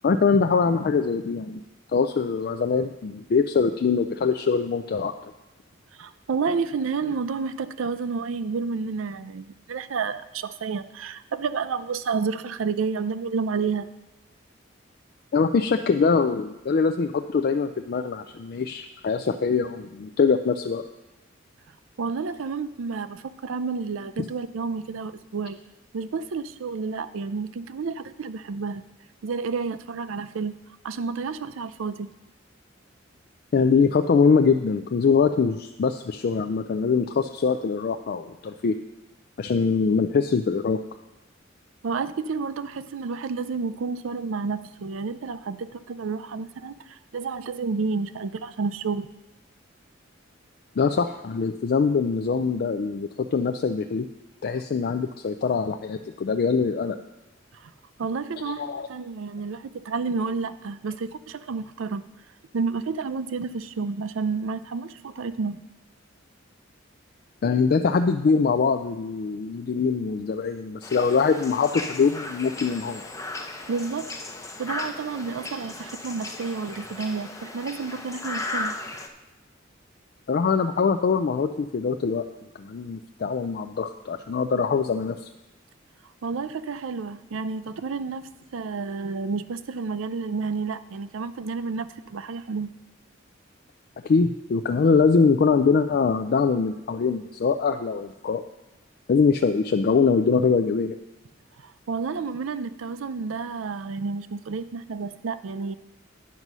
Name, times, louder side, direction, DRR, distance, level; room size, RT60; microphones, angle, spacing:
voice 1, 0.0-1.6 1.9-5.1 15.3-20.8 33.5-38.8 39.4-40.8 50.8-54.1 54.4-57.0 58.5-58.9 67.4-73.0 80.3-82.3 82.6-85.1 94.0-98.4 99.1-101.0, left 5 dB, 50° left, 7 dB, 0.4 m, -23 dB
voice 2, 6.0-13.9 22.0-25.6 25.9-28.8 29.2-30.5 30.8-32.1 41.8-49.1 57.6-57.7 58.0-58.6 58.9-62.0 62.5-65.6 73.7-74.1 74.6-78.8 86.2-92.7 101.6-105.8, right 4 dB, 85° right, 12 dB, 0.5 m, -30 dB
sound 1, 70.8-79.1, left 2 dB, 15° left, 0.7 m, -36 dB
9.5 x 5.4 x 6.1 m, 1.0 s
head